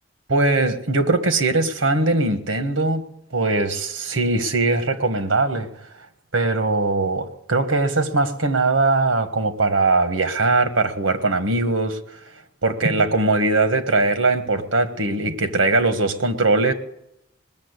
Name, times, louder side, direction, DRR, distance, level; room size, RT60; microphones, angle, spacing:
voice 1, 0.3-3.1 3.3-5.7 6.3-12.0 12.6-16.7, right 3 dB, 75° right, 1.6 m, -20 dB
21.0 x 7.1 x 8.3 m
head